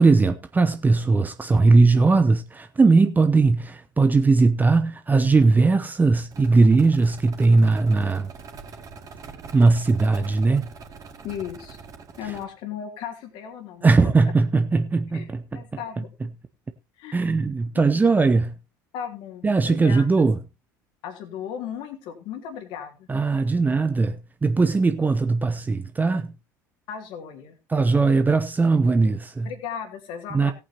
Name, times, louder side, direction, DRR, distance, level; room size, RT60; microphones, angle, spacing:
voice 1, 0.0-8.3 9.5-10.7 13.8-15.6 17.1-18.5 19.4-20.4 23.1-26.3 27.7-29.5 30.3-30.5, right 3 dB, 15° right, 0.9 m, -19 dB
sound 1, 6.3-12.4, right 5 dB, 35° right, 2.6 m, -43 dB
voice 2, 11.2-11.8 12.2-13.9 15.1-15.3 15.5-16.1 17.0-17.2 17.7-18.0 18.9-20.1 21.0-23.1 26.9-27.6 29.4-30.5, left 8 dB, 55° left, 2.6 m, -36 dB
18.0 x 8.6 x 2.9 m
figure-of-eight pair, 65°, 10 cm